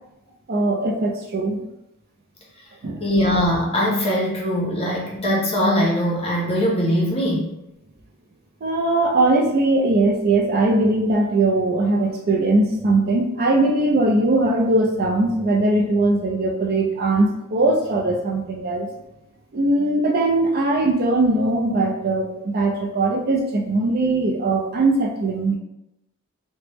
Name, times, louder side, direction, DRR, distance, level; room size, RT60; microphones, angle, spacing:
voice 1, 0.5-1.6 2.8-3.0 8.6-18.9 19.5-25.6, right 2 dB, 45° right, 1 dB, 0.4 m, -20 dB
voice 2, 3.0-7.5, equal, 25° left, -3 dB, 0.7 m, -21 dB
3.3 x 2.1 x 2.9 m, 0.88 s
head